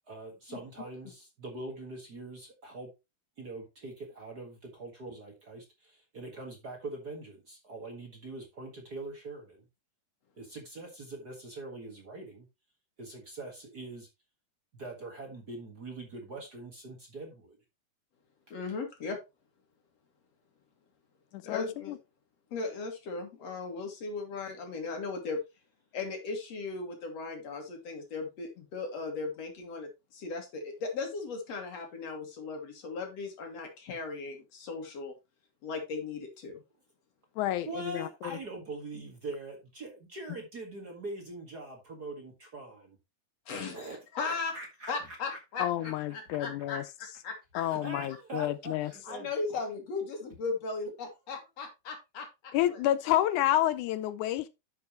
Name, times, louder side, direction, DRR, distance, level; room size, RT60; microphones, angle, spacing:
voice 1, 0.1-2.9 3.4-9.7 10.4-12.5 13.0-14.1 14.7-17.6 37.6-43.0 43.7-45.9 47.6-49.3, right 2 dB, 40° right, 1.8 m, -43 dB
voice 2, 18.5-19.2 21.4-22.0 22.5-25.4 25.9-35.1 35.6-36.6 43.5-44.6 44.9-47.6 49.0-52.3 52.7-52.8, left 4 dB, 55° left, 3.2 m, -37 dB
voice 3, 21.3-22.0 37.4-38.1 45.6-46.8 47.6-48.9 52.5-54.5, left 13 dB, 85° left, 2.1 m, -29 dB
10.5 x 6.9 x 3.0 m
omnidirectional pair, 3.5 m